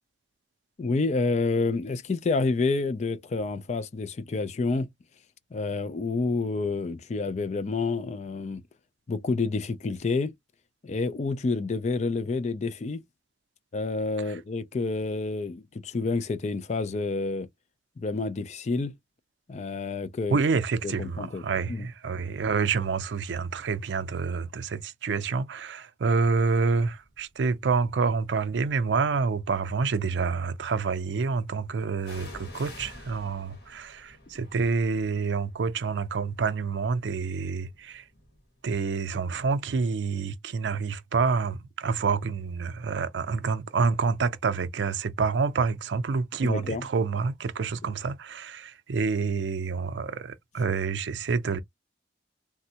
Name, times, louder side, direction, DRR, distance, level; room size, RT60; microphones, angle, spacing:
voice 1, 0.8-4.9 5.5-8.6 9.1-10.3 10.8-13.0 13.7-17.5 18.0-18.9 19.5-20.4 20.8-21.9 46.4-46.9, left 3 dB, 40° left, 0.4 m, -29 dB
voice 2, 20.3-38.0 38.6-51.6, right 4 dB, 85° right, 0.5 m, -28 dB
sound 1, 27.0-27.4 28.2-29.1 32.0-39.6 39.9-40.0, left 1 dB, 65° left, 1.6 m, -49 dB
3.3 x 2.1 x 2.7 m
head